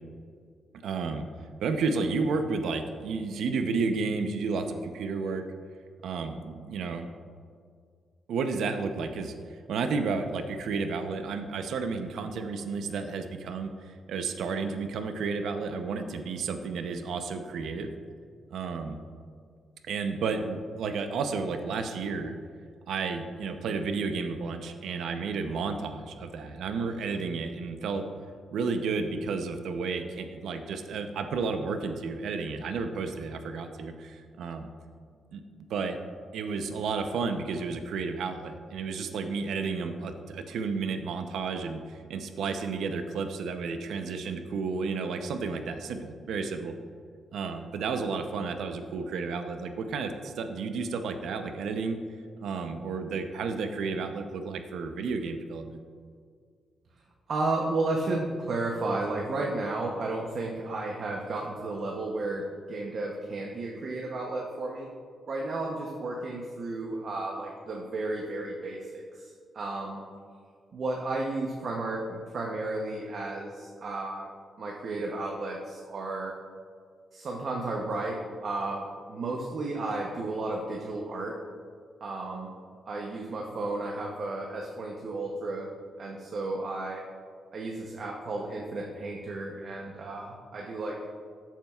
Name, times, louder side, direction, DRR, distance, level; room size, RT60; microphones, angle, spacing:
voice 1, 0.8-1.2 1.6-5.5 6.0-7.1 8.3-9.3 9.7-17.9 18.5-19.0 19.8-22.3 22.9-28.0 28.5-34.7 35.3-35.4 35.7-36.0 36.3-46.7 47.3-52.0 52.4-55.8, right 4 dB, 80° right, 7 dB, 0.7 m, -32 dB
voice 2, 57.3-64.9 65.3-70.0 70.7-74.3 74.6-76.3 77.1-81.4 82.0-82.5 82.9-85.7 86.0-87.0 87.5-91.0, right 2 dB, 45° right, -1 dB, 0.8 m, -33 dB
13.5 x 7.3 x 2.4 m, 2.1 s
wide cardioid pair, 180°, 0 cm